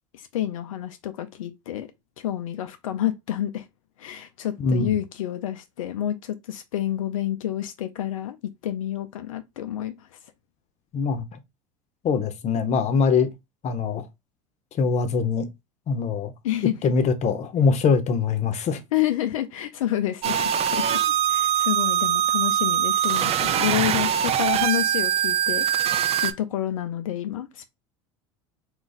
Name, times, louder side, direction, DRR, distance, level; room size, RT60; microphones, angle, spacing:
voice 1, 0.1-1.9 2.2-3.7 4.0-8.4 8.6-10.1 16.4-16.7 18.9-20.4 20.7-21.0 21.3-25.7 26.2-27.7, left 12 dB, 85° left, 0.4 m, -28 dB
voice 2, 4.6-5.0 10.9-11.3 12.0-13.3 13.6-14.0 14.7-15.5 15.9-16.3 16.8-18.8, left 5 dB, 40° left, 0.7 m, -23 dB
sound 1, 20.2-26.3, right 10 dB, 35° right, 0.5 m, -23 dB
2.4 x 2.2 x 3.9 m
hypercardioid pair, 85°, 17 cm